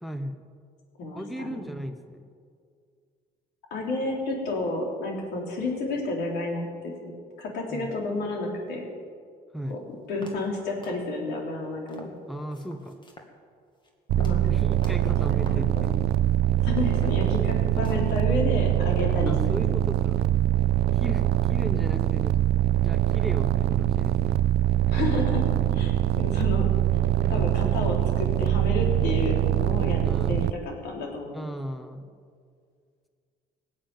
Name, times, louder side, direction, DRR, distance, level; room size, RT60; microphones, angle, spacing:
voice 1, 0.0-0.4 1.1-2.3 7.7-7.9 9.5-9.8 12.3-13.0 14.5-16.0 17.8-17.9 19.3-20.2 20.9-22.4 22.8-24.5 27.2-27.5 30.0-30.5 31.3-32.1, equal, ahead, 8 dB, 0.9 m, -36 dB
voice 2, 1.0-1.6 3.7-8.8 9.7-9.8 10.1-12.1 14.2-14.6 15.3-15.5 15.8-15.9 16.6-19.6 24.9-27.0 27.3-31.5, left 2 dB, 80° left, 0 dB, 3.7 m, -31 dB
sound 1, 9.7-9.8 10.2-10.6 10.8-11.4 11.9-12.2 12.5-13.3 13.7-13.9 14.2-14.5 14.8-15.2 15.5-15.7 16.2-16.3 16.8-17.6 17.8-18.2, left 2 dB, 25° left, 2.1 m, -48 dB
sound 2, 14.1-30.5, right 13 dB, 70° right, 0.5 m, -23 dB
18.5 x 7.3 x 9.1 m, 2.2 s
cardioid pair, 110°, 17 cm